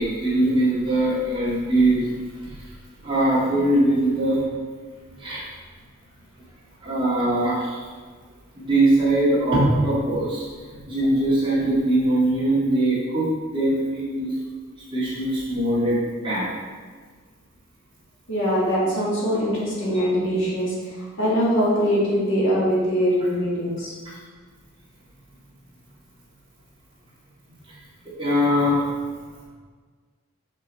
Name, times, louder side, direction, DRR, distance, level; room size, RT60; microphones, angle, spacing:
voice 1, 0.0-2.1 2.4-2.7 3.0-4.4 5.2-5.4 6.8-7.8 8.5-10.5 10.9-14.3 14.9-16.5 24.1-24.2 28.2-28.9, right 1 dB, 25° right, -8 dB, 2.0 m, -21 dB
voice 2, 18.3-23.9, equal, 55° left, -6 dB, 2.0 m, -22 dB
5.8 x 5.6 x 4.1 m, 1.5 s
head